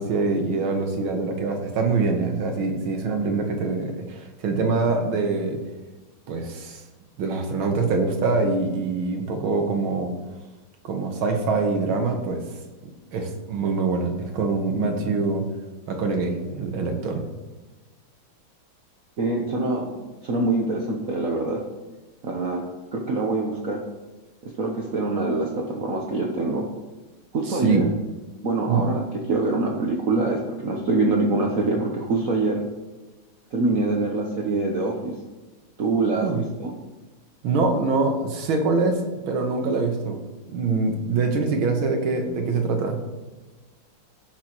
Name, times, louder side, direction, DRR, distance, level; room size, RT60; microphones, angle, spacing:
voice 1, 0.0-5.6 6.3-6.8 7.2-10.1 10.8-12.4 13.1-15.5 15.9-17.2 27.5-27.8 28.7-28.8 36.1-36.4 37.4-40.2 40.5-43.0, right 4 dB, 80° right, 3 dB, 2.0 m, -24 dB
voice 2, 19.2-21.6 22.2-22.6 22.9-23.8 24.4-26.7 27.3-27.9 28.4-29.0 29.3-32.6 33.5-35.1 35.8-36.8, right 2 dB, 50° right, 0 dB, 1.2 m, -24 dB
16.5 x 6.0 x 3.0 m, 1.2 s
omnidirectional pair, 2.2 m